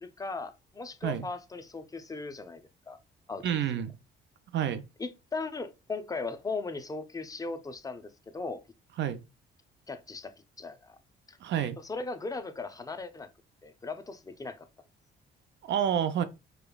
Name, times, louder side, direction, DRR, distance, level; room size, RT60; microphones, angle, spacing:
voice 1, 0.0-2.6 2.9-3.0 3.3-3.6 5.0-8.6 9.9-11.0 11.3-11.4 11.8-13.3 13.6-14.7, left 3 dB, 20° left, 0.5 m, -38 dB
voice 2, 3.4-3.9 4.5-4.8 9.0-9.2 11.4-11.8 15.6-16.2, right 9 dB, 65° right, 0.6 m, -28 dB
5.0 x 2.3 x 2.2 m
cardioid pair, 90°, 20 cm